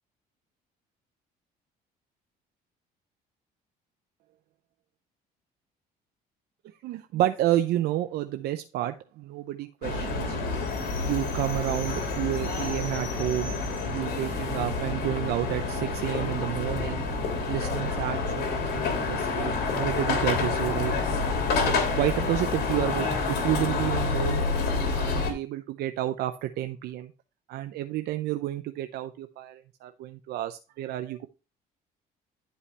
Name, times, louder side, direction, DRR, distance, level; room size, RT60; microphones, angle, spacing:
voice 1, 6.8-10.6 11.0-13.5 13.8-17.1 17.5-20.9 21.6-24.4 24.8-27.1 27.5-31.3, right 14 dB, 75° right, 8 dB, 0.6 m, -30 dB
sound 1, 9.8-25.3, left 4 dB, 70° left, 3.0 m, -28 dB
11.0 x 5.5 x 3.3 m, 0.31 s
cardioid pair, 110°, 17 cm